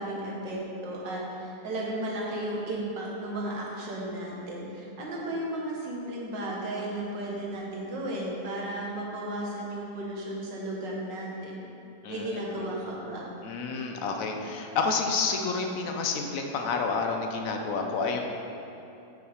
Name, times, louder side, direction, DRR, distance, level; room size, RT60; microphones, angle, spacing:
voice 1, 0.0-11.7 12.1-13.3, right 1 dB, 85° right, -3 dB, 2.0 m, -34 dB
voice 2, 12.0-12.6 13.4-18.2, left 4 dB, 60° left, 3 dB, 1.0 m, -29 dB
7.7 x 6.0 x 5.0 m, 2.9 s
omnidirectional pair, 1.9 m